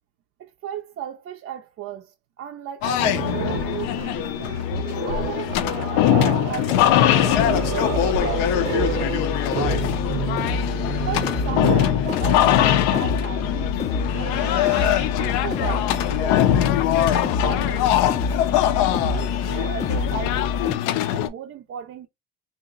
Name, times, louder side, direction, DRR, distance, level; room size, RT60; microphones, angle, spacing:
voice 1, 0.4-4.6 5.0-9.2 11.0-14.6 15.2-18.3 18.8-22.1, right 10 dB, 40° right, 0.4 m, -36 dB
sound 1, 2.8-21.3, left 12 dB, 75° left, 0.5 m, -22 dB
Growling, 3.0-12.0 13.3-13.5 13.9-15.1, right 8 dB, 80° right, 0.6 m, -30 dB
sound 2, 7.3-20.8, left 4 dB, 20° left, 0.4 m, -28 dB
2.8 x 2.1 x 3.7 m
supercardioid pair, 110°, 34 cm